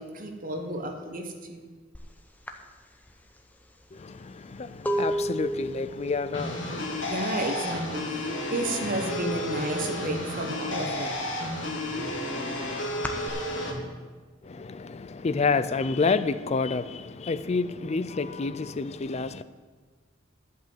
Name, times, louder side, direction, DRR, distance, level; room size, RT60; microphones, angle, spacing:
voice 1, 0.0-1.7 7.1-11.3 11.9-13.8, right 1 dB, 45° right, 1.2 m, -33 dB
sound 1, 1.9-2.1 2.5-8.1 8.4-8.9 9.2-10.3 10.7-13.3, equal, 10° left, 0.8 m, -34 dB
voice 2, 3.9-7.4 8.4-8.5 14.4-19.4, left 4 dB, 35° left, 0.4 m, -29 dB
sound 2, 6.3-13.7, left 1 dB, 70° left, 1.9 m, -32 dB
11.5 x 5.4 x 7.8 m
head